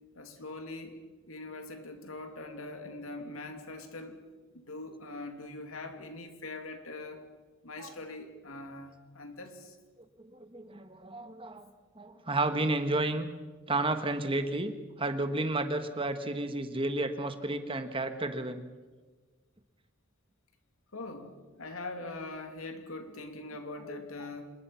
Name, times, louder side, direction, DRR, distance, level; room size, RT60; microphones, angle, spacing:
voice 1, 0.1-1.0 1.3-4.2 4.5-7.2 7.6-9.8 20.9-21.3 21.6-24.5, left 2 dB, 80° left, 5 dB, 2.7 m, -42 dB
voice 2, 10.2-11.7 12.0-13.3 13.7-14.7 15.0-18.6 23.9-24.0, right 2 dB, 25° right, 8 dB, 1.4 m, -32 dB
26.0 x 21.0 x 5.8 m, 1.4 s
head